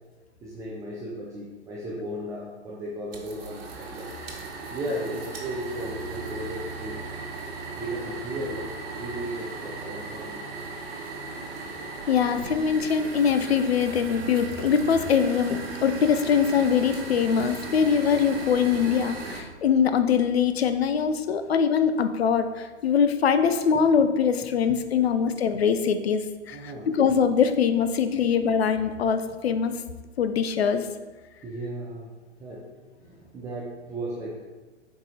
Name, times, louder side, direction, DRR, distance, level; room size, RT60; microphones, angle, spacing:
voice 1, 0.4-4.1 4.7-7.0 7.8-10.5 21.4-21.5 26.5-26.9 31.4-32.1 32.4-34.4, right 1 dB, 10° right, -6 dB, 0.5 m, -35 dB
sound 1, 3.1-19.4, right 3 dB, 50° right, 1.3 m, -37 dB
voice 2, 12.1-29.7 30.2-30.9, left 7 dB, 60° left, 10 dB, 0.6 m, -23 dB
7.6 x 4.7 x 2.8 m, 1.3 s
figure-of-eight pair, 110°, 36 cm